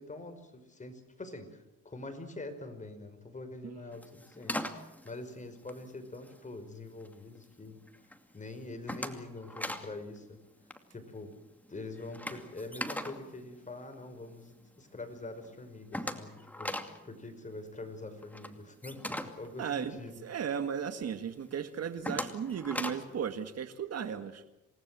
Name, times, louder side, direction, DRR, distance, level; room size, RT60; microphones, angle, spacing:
voice 1, 0.0-7.8 8.3-10.4 10.9-11.4 11.7-16.7 17.0-20.3, left 2 dB, 25° left, 7 dB, 5.5 m, -45 dB
voice 2, 3.6-4.0 19.6-24.4, right 7 dB, 55° right, 9 dB, 1.9 m, -36 dB
sound 1, 3.9-6.5 6.9-7.4 7.8-8.2 8.5-9.9 10.2-10.4 10.6-14.4 14.8-14.9 15.2-15.3 15.4-20.5 20.9-21.0 21.5-23.2, left 1 dB, 5° left, 2.5 m, -40 dB
27.5 x 19.0 x 7.7 m, 0.95 s
cardioid pair, 90°, 30 cm